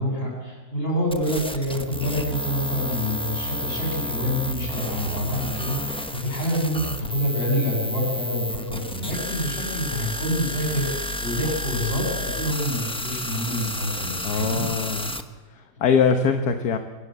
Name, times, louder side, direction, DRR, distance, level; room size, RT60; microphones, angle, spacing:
voice 1, 0.0-14.6, equal, 30° left, -1 dB, 7.7 m, -27 dB
sound 1, 1.1-15.2, left 1 dB, 5° left, 0.5 m, -31 dB
voice 2, 14.2-15.2 15.5-16.8, left 6 dB, 60° left, 6 dB, 1.6 m, -23 dB
23.5 x 15.5 x 8.0 m, 1.3 s
omnidirectional pair, 2.0 m